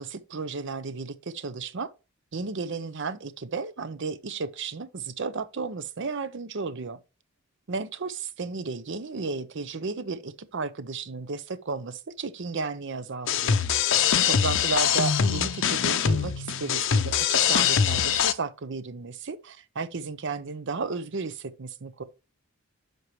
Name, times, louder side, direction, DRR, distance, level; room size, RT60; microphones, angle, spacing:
voice 1, 0.0-1.9 2.3-7.0 7.7-13.6 14.2-22.0, right 4 dB, 60° right, 0.7 m, -33 dB
sound 1, 13.3-18.3, left 7 dB, 65° left, 0.6 m, -23 dB
7.9 x 6.1 x 3.1 m
head